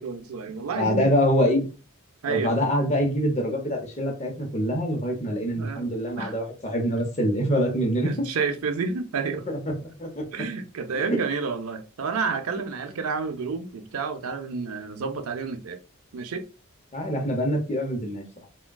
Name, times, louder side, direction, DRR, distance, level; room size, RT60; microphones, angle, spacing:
voice 1, 0.0-1.1 2.2-2.5 5.6-5.9 6.2-6.3 8.0-9.5 10.3-15.8 16.1-16.5, right 5 dB, 85° right, 0.5 m, -30 dB
voice 2, 0.7-1.7 2.3-8.3 9.5-10.3 10.9-11.2 16.9-18.4, equal, 30° left, 0.7 m, -25 dB
3.5 x 2.2 x 2.2 m
head